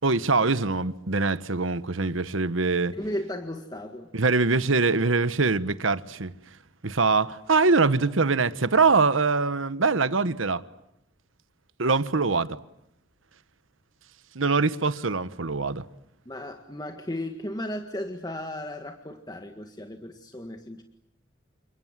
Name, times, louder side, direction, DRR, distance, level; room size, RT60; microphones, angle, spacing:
voice 1, 0.0-3.0 4.1-6.3 6.8-10.6 11.8-12.6 14.3-15.8, right 4 dB, 85° right, 1.3 m, -23 dB
voice 2, 2.9-4.1 16.3-20.8, left 1 dB, 20° left, 1.8 m, -35 dB
29.5 x 27.0 x 7.5 m
head